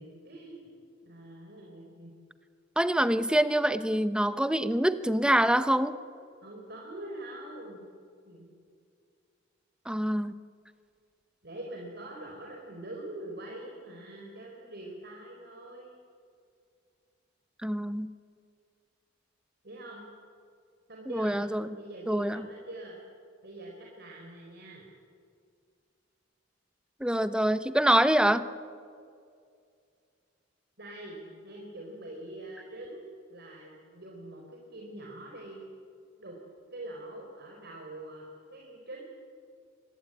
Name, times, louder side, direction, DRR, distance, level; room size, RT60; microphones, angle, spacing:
voice 1, 0.0-2.1 6.4-7.9 8.3-8.5 11.4-16.0 19.6-20.0 20.9-21.4 21.7-23.0 23.4-24.9 30.8-33.0 33.3-35.6 36.2-36.4 36.7-39.0, right 1 dB, 60° right, -1 dB, 4.1 m, -44 dB
voice 2, 2.8-6.0 9.9-10.4 17.6-18.1 21.1-21.7 22.1-22.5 27.0-28.5, right 1 dB, 5° right, 12 dB, 0.9 m, -25 dB
24.5 x 20.5 x 8.9 m, 2.3 s
head